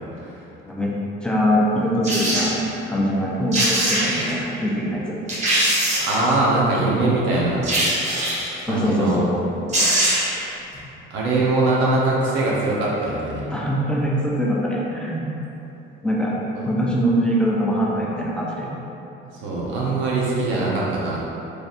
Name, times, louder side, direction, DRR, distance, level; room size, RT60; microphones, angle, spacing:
voice 1, 0.6-0.9 1.2-2.5 2.9-5.2 8.6-9.3 13.5-15.3 16.0-16.3 16.7-18.7, equal, 5° left, -5 dB, 0.5 m, -22 dB
sound 1, 2.0-2.5 3.2-3.3 3.5-4.3 4.9-5.0 5.3-6.3 7.6-8.5 9.4-9.5 9.7-10.4 10.7-10.8, right 1 dB, 35° right, 0.9 m, -21 dB
voice 2, 6.0-7.7 8.7-9.2 11.1-13.5 16.6-16.7 19.4-21.2, right 2 dB, 75° right, -5 dB, 0.9 m, -22 dB
4.0 x 3.2 x 2.5 m, 3.0 s
cardioid pair, 145°, 20 cm